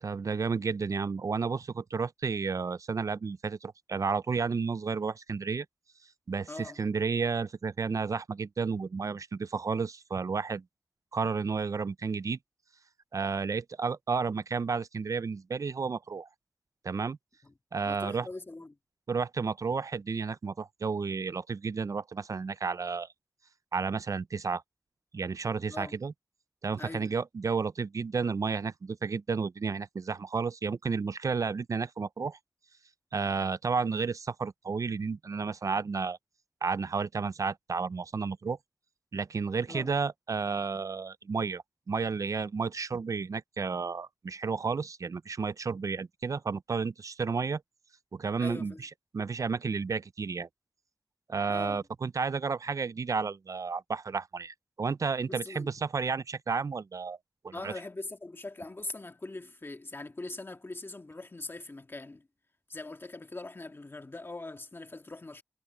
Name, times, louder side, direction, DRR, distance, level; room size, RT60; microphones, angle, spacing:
voice 1, 0.0-5.7 6.3-10.6 11.1-12.4 13.1-16.3 16.8-17.2 17.7-18.3 19.1-23.1 23.7-24.6 25.1-26.1 26.6-32.4 33.1-36.2 36.6-38.6 39.1-47.6 48.1-50.5 51.3-57.2 57.4-57.7, right 5 dB, 70° right, 0.4 m, -32 dB
voice 2, 6.5-6.8 17.4-17.5 17.9-18.8 25.7-25.9 26.8-27.1 39.7-39.9 48.4-48.8 51.5-51.8 55.3-55.7 57.5-62.3 62.7-65.4, left 2 dB, 40° left, 1.8 m, -42 dB
wide cardioid pair, 80°, 6 cm